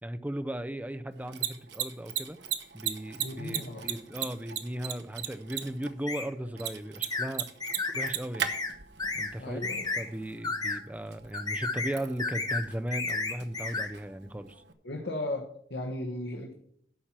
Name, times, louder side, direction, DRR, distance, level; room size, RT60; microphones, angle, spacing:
voice 1, 0.0-2.4 2.7-7.5 7.9-8.5 9.1-9.6 10.0-14.6, right 1 dB, 10° right, 10 dB, 0.5 m, -36 dB
Mechanisms, 1.1-14.7, right 9 dB, 80° right, 1.0 m, -39 dB
voice 2, 3.2-3.9 9.4-10.1 14.8-16.5, left 1 dB, 70° left, 1 dB, 1.2 m, -36 dB
sound 1, 6.1-6.3 7.1-7.3 7.6-8.1 8.5-8.7 9.0-9.3 9.6-10.0 10.4-10.8 11.3-11.9 12.2-12.6 12.9-13.9, left 3 dB, 20° left, 1.1 m, -32 dB
11.0 x 4.4 x 7.3 m, 0.65 s
head